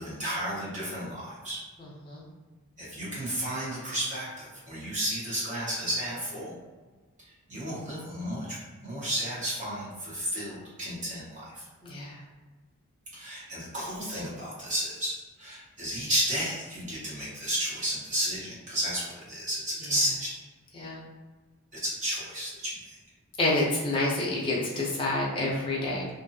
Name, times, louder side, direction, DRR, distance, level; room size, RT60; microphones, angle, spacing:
voice 1, 0.0-1.6 2.8-6.6 7.5-8.6 8.8-11.6 13.1-15.1 15.4-20.4 21.8-22.9, equal, 35° right, -8 dB, 1.0 m, -32 dB
voice 2, 11.8-12.2 20.7-21.0 23.4-26.1, left 2 dB, 20° left, -5 dB, 0.6 m, -28 dB
2.7 x 2.5 x 2.6 m, 1.3 s
head